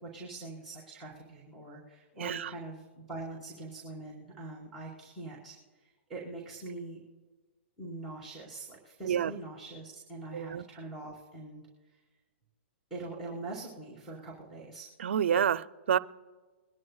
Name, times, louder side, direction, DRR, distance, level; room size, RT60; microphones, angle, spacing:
voice 1, 0.0-5.6 5.8-7.0 7.8-11.6 12.9-14.9, right 2 dB, ahead, -5 dB, 3.7 m, -43 dB
voice 2, 2.2-2.5 9.0-9.3 10.3-10.6 15.0-16.0, right 8 dB, 75° right, 14 dB, 0.5 m, -28 dB
23.5 x 11.0 x 2.3 m, 1.3 s
hypercardioid pair, 140°, 7 cm